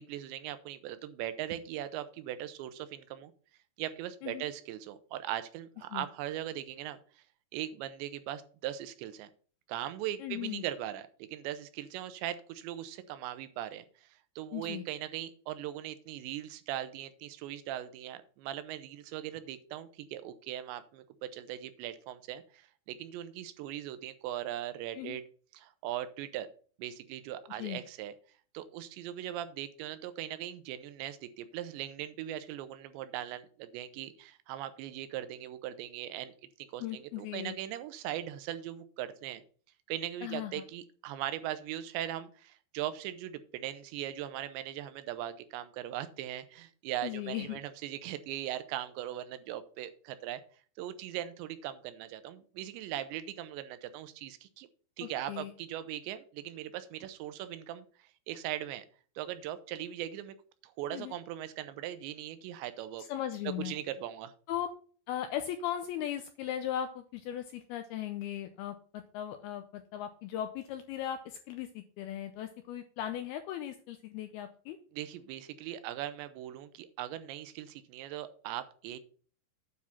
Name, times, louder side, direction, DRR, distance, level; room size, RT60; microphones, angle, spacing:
voice 1, 0.0-3.3 3.8-7.2 7.5-9.3 9.7-14.1 14.4-25.2 25.5-26.5 26.8-28.1 28.5-36.3 36.7-39.4 39.9-50.4 50.8-54.7 55.0-58.9 59.2-60.3 60.6-63.1 63.6-64.3 74.9-79.0, right 12 dB, 80° right, 12 dB, 2.9 m, -39 dB
voice 2, 10.2-10.6 14.5-14.8 24.9-25.2 27.5-27.8 36.8-37.6 40.2-40.5 47.0-47.6 55.0-55.5 60.9-61.1 63.0-63.7 64.5-64.7 65.1-74.8, left 11 dB, 85° left, 8 dB, 2.2 m, -38 dB
9.6 x 4.9 x 5.7 m, 0.43 s
omnidirectional pair, 5.2 m